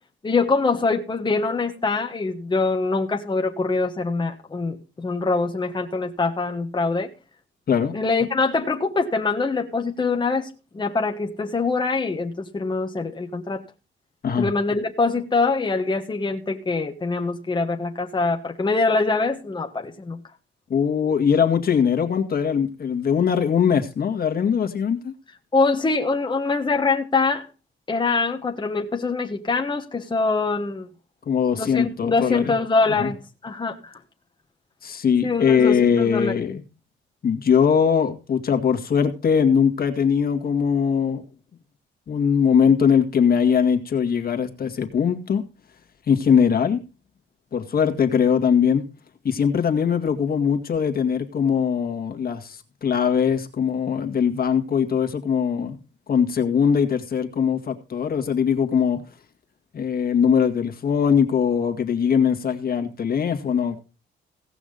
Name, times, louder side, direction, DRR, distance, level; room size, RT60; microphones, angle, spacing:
voice 1, 0.2-7.1 7.9-13.6 14.4-20.2 25.5-27.5 27.9-30.9 31.5-33.2 33.4-33.9 35.2-36.4, left 3 dB, 25° left, 2 dB, 1.3 m, -24 dB
voice 2, 20.7-25.1 31.3-32.5 32.9-33.1 34.8-36.6 37.2-41.2 42.1-45.4 46.1-46.8 47.5-48.8 49.2-55.8 56.1-59.0 59.7-63.8, left 7 dB, 50° left, 5 dB, 2.0 m, -21 dB
17.0 x 6.1 x 5.3 m, 0.31 s
cardioid pair, 90°, 20 cm